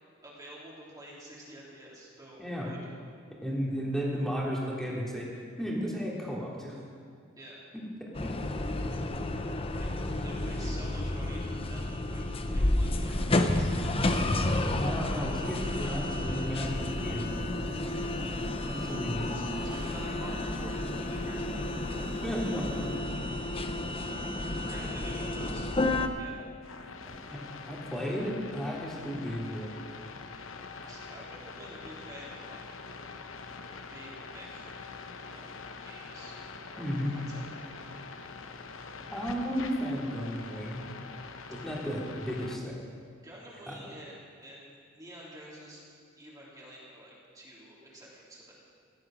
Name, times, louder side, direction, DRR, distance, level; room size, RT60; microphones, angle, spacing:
voice 1, 0.2-2.8 7.4-7.6 8.9-9.0 9.7-13.8 19.3-21.7 24.1-25.7 26.1-26.4 30.8-32.7 33.9-34.7 35.2-35.5 35.8-36.4 36.7-37.8 43.2-45.8 46.2-48.5, right 1 dB, 20° right, -6 dB, 3.4 m, -49 dB
voice 2, 3.4-5.3 5.6-6.8 7.7-7.8 8.2-8.3 10.4-10.5 14.4-17.3 18.6-19.3 22.2-22.9 27.3-27.4 27.6-29.7 36.8-37.1 39.1-40.8 41.5-42.8 43.7-43.8, equal, ahead, -4 dB, 3.0 m, -34 dB
sound 1, 8.1-26.1, left 1 dB, 30° left, 0.8 m, -31 dB
sound 2, 16.4-23.0, right 1 dB, 35° right, 3.0 m, -45 dB
sound 3, 26.6-42.6, left 4 dB, 70° left, 1.0 m, -44 dB
16.5 x 12.0 x 6.2 m, 2.2 s
head